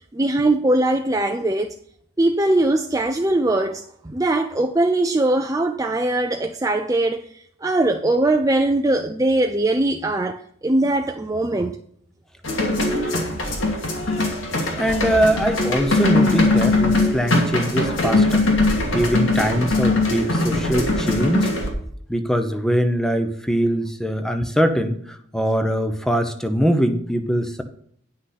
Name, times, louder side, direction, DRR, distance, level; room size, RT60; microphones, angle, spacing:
voice 1, 0.1-1.8 2.2-11.8, right 2 dB, 15° right, 0.4 m, -21 dB
sound 1, 12.4-21.7, left 2 dB, 80° left, 2.5 m, -21 dB
voice 2, 14.8-18.4 18.9-21.6 22.1-27.6, equal, 5° left, 0.8 m, -22 dB
9.8 x 6.1 x 5.8 m
head